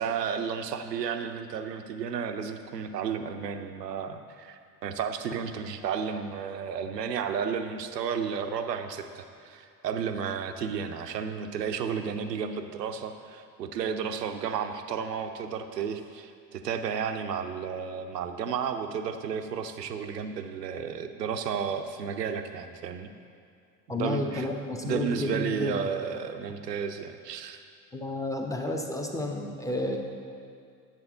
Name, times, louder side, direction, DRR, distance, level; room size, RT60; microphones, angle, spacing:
voice 1, 0.0-23.1 23.9-24.5 24.8-27.6, right 7 dB, 85° right, 7 dB, 0.6 m, -32 dB
voice 2, 23.9-25.8 27.9-30.0, left 2 dB, 5° left, 2 dB, 0.9 m, -31 dB
9.8 x 7.4 x 3.7 m, 2.3 s
figure-of-eight pair, 55°, 48 cm